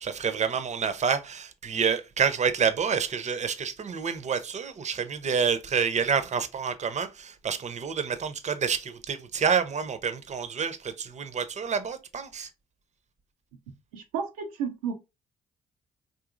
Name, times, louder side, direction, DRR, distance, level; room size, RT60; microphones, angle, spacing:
voice 1, 0.0-12.5, right 6 dB, 40° right, 0.6 m, -28 dB
voice 2, 13.9-14.9, right 6 dB, 85° right, 0.5 m, -32 dB
3.8 x 2.6 x 2.5 m
hypercardioid pair, 45°, 18 cm